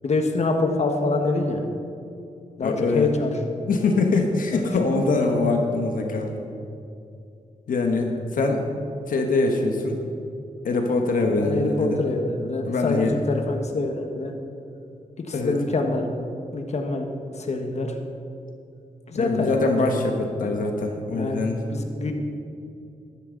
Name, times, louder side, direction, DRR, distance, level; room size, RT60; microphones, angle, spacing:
voice 1, 0.0-1.6 2.6-3.3 4.5-4.7 5.4-5.5 11.4-14.3 15.3-16.1 16.5-17.1 17.4-17.9 19.1-20.0 21.1-21.4 21.7-22.1, left 3 dB, 50° left, 4 dB, 1.5 m, -25 dB
voice 2, 2.6-3.1 3.6-6.4 7.7-8.6 9.1-10.0 10.6-12.0 12.6-13.2 15.3-15.5 19.2-21.7 22.0-22.1, left 3 dB, 75° left, 3 dB, 1.4 m, -23 dB
13.5 x 12.0 x 4.0 m, 2.6 s
wide cardioid pair, 110°, 14 cm